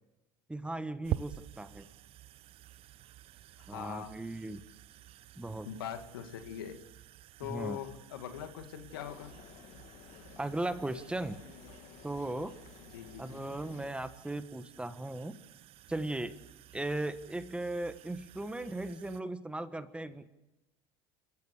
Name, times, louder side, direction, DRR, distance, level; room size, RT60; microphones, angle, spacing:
voice 1, 0.5-1.9 3.7-4.6 5.4-5.7 7.5-7.8 10.4-11.4 12.0-12.5 13.2-15.4 15.9-16.4 16.7-20.2, right 2 dB, 10° right, 11 dB, 1.4 m, -37 dB
sound 1, 1.0-19.2, right 14 dB, 50° right, 0.7 m, -48 dB
voice 2, 3.6-4.1 5.7-6.8 7.4-9.3 12.9-13.5, left 10 dB, 85° left, 8 dB, 2.0 m, -42 dB
sound 2, 8.9-13.9, left 10 dB, 60° left, 1.8 m, -54 dB
29.5 x 14.0 x 6.6 m, 0.95 s
hypercardioid pair, 80°, 12 cm